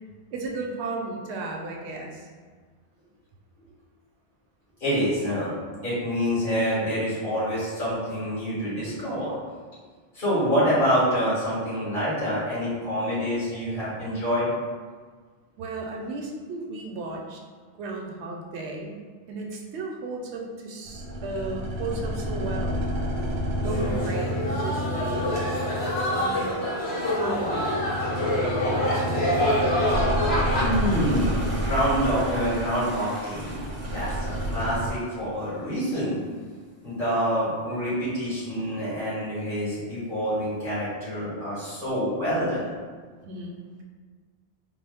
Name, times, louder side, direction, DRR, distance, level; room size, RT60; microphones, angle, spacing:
voice 1, 0.3-2.3 15.6-17.4 17.8-19.0 19.3-22.8 23.6-25.4 26.0-26.6 27.1-27.7 28.0-29.3 43.3-43.6, right 2 dB, 85° right, 1 dB, 0.8 m, -34 dB
voice 2, 4.8-5.5 5.8-9.4 10.1-14.5 30.6-36.2 36.8-42.7, equal, 50° left, -11 dB, 1.8 m, -26 dB
sound 1, 20.9-26.8 27.0-34.9, equal, 55° right, 0.7 m, -30 dB
sound 2, 23.6-30.7, left 1 dB, 70° left, 1.1 m, -26 dB
Toilet flush, 30.0-36.0, right 1 dB, 15° right, 0.5 m, -41 dB
3.8 x 2.0 x 3.4 m, 1.5 s
omnidirectional pair, 1.1 m